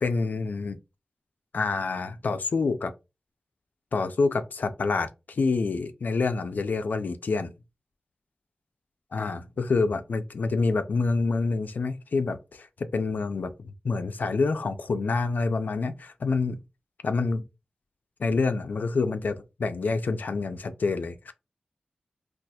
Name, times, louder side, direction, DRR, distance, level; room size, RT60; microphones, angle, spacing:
voice 1, 0.0-0.8 1.5-2.9 3.9-7.5 9.1-13.5 13.8-16.6 17.0-17.4 18.2-21.3, left 4 dB, 70° left, 0.4 m, -27 dB
4.1 x 2.4 x 2.2 m
wide cardioid pair, 90°, 3 cm